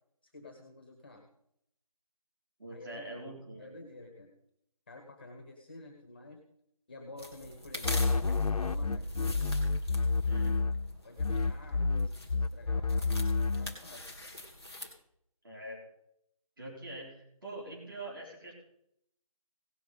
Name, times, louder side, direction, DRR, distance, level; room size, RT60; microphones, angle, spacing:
voice 1, 0.2-1.3 2.7-3.1 3.6-4.4 4.9-6.4 6.9-9.6 11.0-14.1, left 2 dB, 15° left, 2 dB, 1.1 m, -50 dB
voice 2, 2.6-3.7 10.3-10.6 15.4-15.8 16.6-18.5, right 1 dB, 35° right, -1 dB, 3.9 m, -44 dB
sound 1, 7.2-14.9, left 1 dB, 5° right, 0.9 m, -44 dB
sound 2, 7.8-10.9 11.2-13.7, left 4 dB, 80° left, 0.7 m, -29 dB
17.0 x 6.0 x 5.2 m, 0.74 s
figure-of-eight pair, 175°, 19 cm